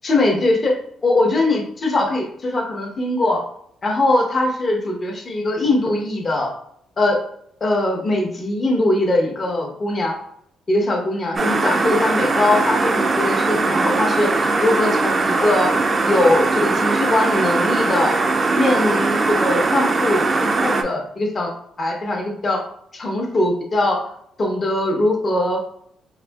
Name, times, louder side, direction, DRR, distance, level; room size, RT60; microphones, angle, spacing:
voice 1, 0.0-0.7 1.0-3.4 3.8-6.5 7.0-7.2 7.6-10.1 10.7-18.2 18.6-21.5 21.8-22.6 22.9-24.1 24.4-25.6, left 2 dB, 40° left, 1 dB, 0.9 m, -21 dB
sound 1, 11.4-20.8, right 3 dB, 35° right, 0.4 m, -20 dB
4.1 x 2.6 x 2.3 m, 0.68 s
cardioid pair, 90°, 0 cm